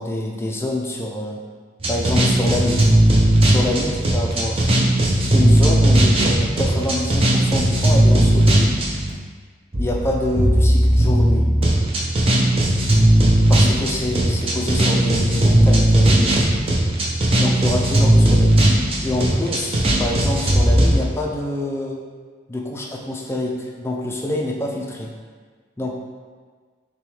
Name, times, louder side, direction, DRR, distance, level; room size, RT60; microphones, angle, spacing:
voice 1, 0.0-1.4 1.9-2.8 3.4-4.7 5.3-8.7 9.8-11.5 13.5-16.5 17.4-18.6 19.0-22.0 22.5-25.1 25.8-25.9, left 1 dB, 15° left, -1 dB, 0.4 m, -26 dB
sound 1, 1.8-9.1 9.7-20.9, right 1 dB, 30° right, 0.6 m, -17 dB
6.2 x 2.3 x 3.2 m, 1.5 s
head